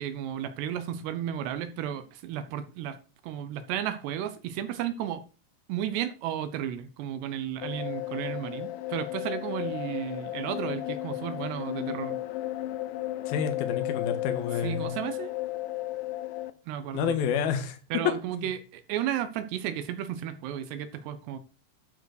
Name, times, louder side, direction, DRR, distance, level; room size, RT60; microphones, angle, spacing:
voice 1, 0.0-3.0 3.2-5.2 5.7-12.2 14.6-15.3 16.7-17.2 17.9-21.4, right 10 dB, 80° right, 11 dB, 2.7 m, -33 dB
sound 1, 7.6-16.5, left 15 dB, 90° left, 3.0 m, -34 dB
voice 2, 13.3-14.9 16.9-17.8 18.3-18.5, left 7 dB, 70° left, 8 dB, 2.9 m, -29 dB
12.0 x 4.8 x 6.5 m, 0.36 s
omnidirectional pair, 5.1 m